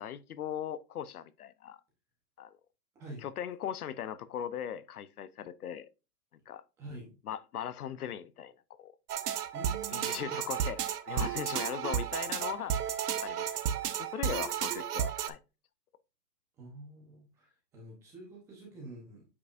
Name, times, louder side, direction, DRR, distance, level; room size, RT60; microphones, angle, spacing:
voice 1, 0.0-1.8 2.4-2.5 3.2-5.9 6.5-6.6 7.3-8.5 8.8-8.9 9.9-12.7 13.2-13.5 14.0-15.4, left 9 dB, 65° left, 0.7 m, -39 dB
voice 2, 6.8-7.1 9.5-10.4 16.6-19.3, right 2 dB, 5° right, 0.8 m, -47 dB
sound 1, 9.1-15.3, right 9 dB, 70° right, 0.9 m, -33 dB
8.4 x 4.8 x 2.5 m
hypercardioid pair, 175°, 49 cm